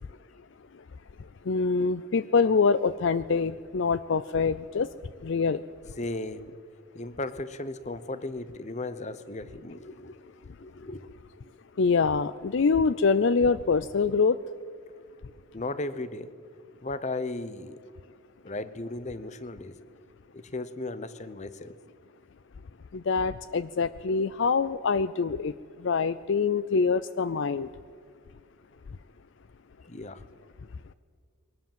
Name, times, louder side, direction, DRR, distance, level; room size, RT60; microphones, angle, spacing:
voice 1, 1.5-4.9 5.2-5.6 11.8-14.4 22.9-25.5 25.8-27.7, left 5 dB, 60° left, 15 dB, 0.5 m, -25 dB
voice 2, 6.0-6.5 6.9-10.2 10.6-11.0 15.5-16.3 16.8-17.8 18.4-19.7 20.3-21.8 29.9-30.2, left 2 dB, 35° left, 14 dB, 0.9 m, -36 dB
22.5 x 19.0 x 7.5 m, 2.1 s
head